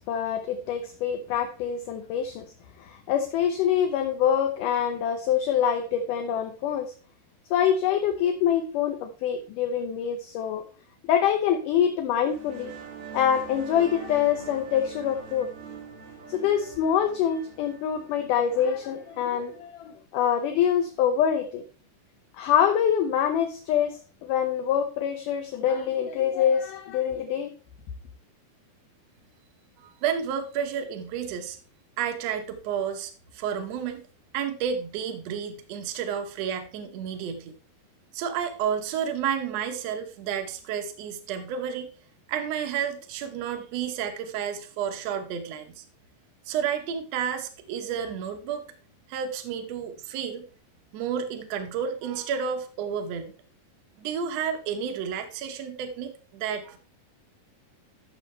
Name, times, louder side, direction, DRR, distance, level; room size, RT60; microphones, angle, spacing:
voice 1, 0.1-2.5 2.8-6.9 7.5-10.6 11.1-12.7 13.1-15.5 16.3-21.6 22.4-27.5, left 9 dB, 75° left, 6 dB, 2.0 m, -25 dB
sound 1, 12.2-19.6, right 6 dB, 65° right, 3.6 m, -43 dB
voice 2, 30.0-31.6 32.0-34.0 34.3-37.5 38.1-41.9 42.3-45.8 46.5-48.7 49.1-50.4 50.9-53.3 54.0-56.8, right 8 dB, 85° right, 7 dB, 1.4 m, -31 dB
13.5 x 6.5 x 3.3 m, 0.39 s
omnidirectional pair, 4.5 m